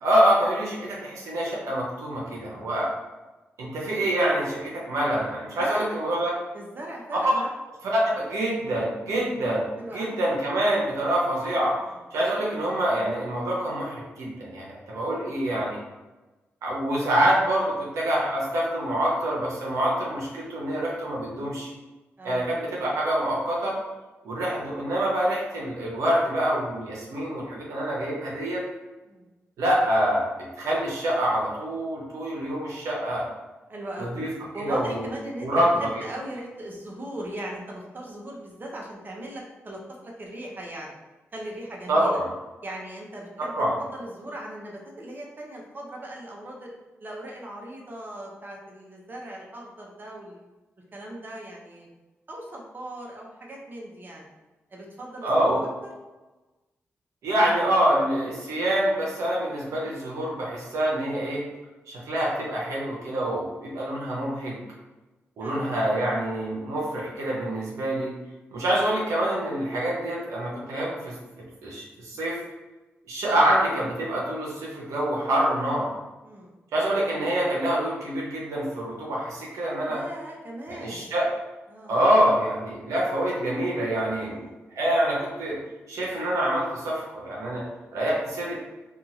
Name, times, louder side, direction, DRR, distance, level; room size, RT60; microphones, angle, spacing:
voice 1, 0.0-2.9 3.6-6.3 7.8-9.6 9.9-11.8 12.1-15.8 16.6-21.7 22.2-23.8 24.2-28.6 29.6-30.3 30.6-33.2 34.0-34.3 34.6-35.0 35.4-35.9 41.9-42.3 43.5-43.7 55.2-55.6 57.2-61.4 61.9-64.6 65.4-68.1 68.5-72.4 73.1-75.9 76.7-80.0 80.7-81.3 81.9-84.5 84.7-85.6 85.9-87.6 87.9-88.6, right 1 dB, 85° right, -4 dB, 0.7 m, -26 dB
voice 2, 6.5-7.5 9.1-9.4 9.8-10.2 11.9-12.0 22.2-22.8 29.1-29.3 33.7-34.1 34.5-40.9 41.3-42.2 42.6-46.7 47.0-50.4 50.9-51.9 52.3-54.3 54.7-55.5 55.8-55.9 65.4-65.9 76.2-76.5 79.9-81.1 81.7-82.0 84.2-84.5, right 1 dB, 40° right, -1 dB, 0.7 m, -39 dB
2.7 x 2.3 x 2.7 m, 1.1 s
cardioid pair, 50°, 5 cm